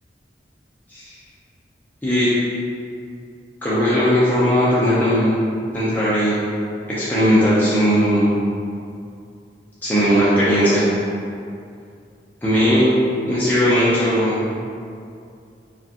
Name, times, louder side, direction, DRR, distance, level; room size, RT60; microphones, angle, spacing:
voice 1, 2.0-2.3 3.6-5.3 5.7-6.4 6.9-8.3 9.8-10.9 12.4-12.9 13.2-14.3, equal, 10° left, -11 dB, 0.5 m, -17 dB
4.8 x 2.3 x 2.8 m, 2.4 s
head